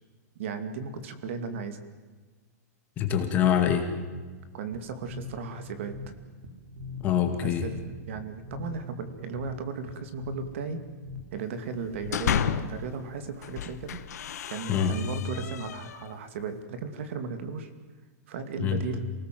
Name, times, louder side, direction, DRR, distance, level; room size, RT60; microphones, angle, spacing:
voice 1, 0.4-1.8 4.5-6.0 7.4-10.8 11.3-14.0 14.5-17.7 18.3-19.1, right 5 dB, 45° right, 10 dB, 2.5 m, -36 dB
voice 2, 3.0-3.9 7.0-7.7 14.7-14.9 18.6-18.8, left 9 dB, 20° left, 5 dB, 2.2 m, -24 dB
sound 1, 4.7-11.6, left 3 dB, 80° right, 4.6 m, -43 dB
sound 2, 11.7-12.9 13.4-16.2, left 9 dB, 70° left, 1.6 m, -32 dB
28.0 x 19.5 x 7.7 m, 1.4 s
supercardioid pair, 175°, 9 cm